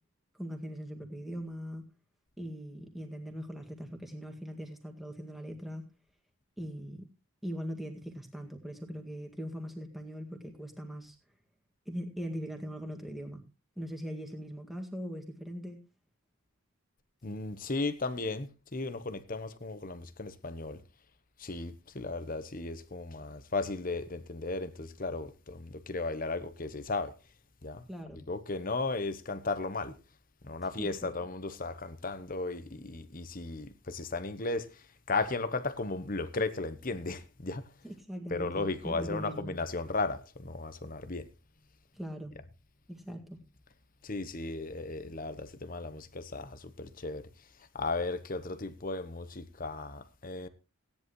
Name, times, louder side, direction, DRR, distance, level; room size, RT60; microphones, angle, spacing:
voice 1, 0.4-1.9 2.4-5.8 6.6-7.0 7.4-11.2 11.9-13.4 13.8-15.8 27.9-28.2 30.8-31.1 37.8-39.5 41.9-42.3 42.9-43.4, equal, ahead, 1.9 m, -40 dB
voice 2, 17.2-20.8 21.4-27.1 27.6-27.9 28.1-30.0 30.4-37.7 38.3-41.3 44.0-47.3 47.7-50.5, left 3 dB, 40° left, 1.0 m, -35 dB
17.0 x 10.5 x 3.1 m
head